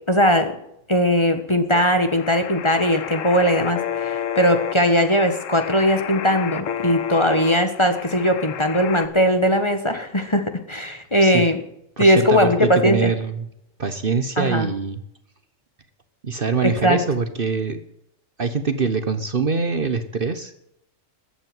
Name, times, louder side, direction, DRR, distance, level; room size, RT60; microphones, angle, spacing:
voice 1, 0.1-0.5 0.9-11.6 12.0-13.1 14.4-14.7 16.6-17.0, equal, 20° left, 7 dB, 1.4 m, -19 dB
sound 1, 1.7-9.1, left 9 dB, 70° left, 1.2 m, -31 dB
voice 2, 12.0-13.5 13.8-15.0 16.2-17.8 18.4-20.6, right 5 dB, 45° right, 10 dB, 1.2 m, -24 dB
14.5 x 8.9 x 9.4 m, 0.76 s
omnidirectional pair, 1.4 m